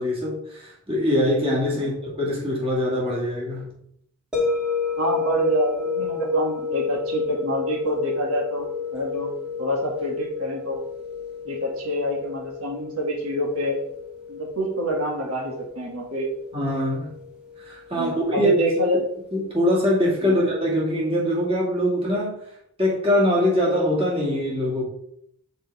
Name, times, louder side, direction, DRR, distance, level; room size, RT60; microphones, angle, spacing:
voice 1, 0.0-3.8 16.5-17.1 17.6-18.5 19.3-22.4 22.8-24.8, equal, 25° right, 2.0 m, -23 dB
sound 1, 4.3-19.3, left 6 dB, 5° right, 1.4 m, -31 dB
voice 2, 5.0-9.3 9.6-10.8 11.4-13.8 14.3-16.3 17.9-19.0 20.2-20.3, equal, 85° right, 1.7 m, -26 dB
6.4 x 4.7 x 4.6 m
head